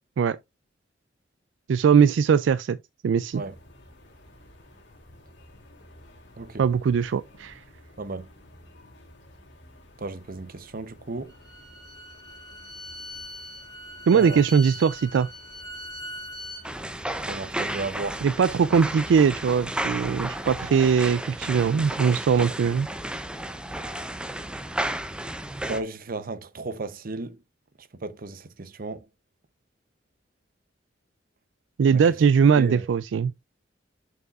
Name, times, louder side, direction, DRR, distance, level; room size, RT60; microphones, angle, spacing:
voice 1, 1.7-2.8 3.0-3.4 6.6-7.6 14.1-15.3 18.2-22.9 31.8-33.3, right 6 dB, 80° right, 0.3 m, -21 dB
sound 1, 3.3-20.9, left 1 dB, 70° left, 2.8 m, -52 dB
voice 2, 8.0-8.3 10.0-11.4 14.1-14.4 17.3-18.2 25.7-27.4 27.8-29.1 31.9-32.0 32.5-32.9, right 3 dB, 50° right, 0.8 m, -34 dB
Bowed string instrument, 11.3-16.6, left 1 dB, 20° left, 3.2 m, -41 dB
sound 2, 16.6-25.8, right 1 dB, 5° right, 0.6 m, -33 dB
6.8 x 6.6 x 2.4 m
head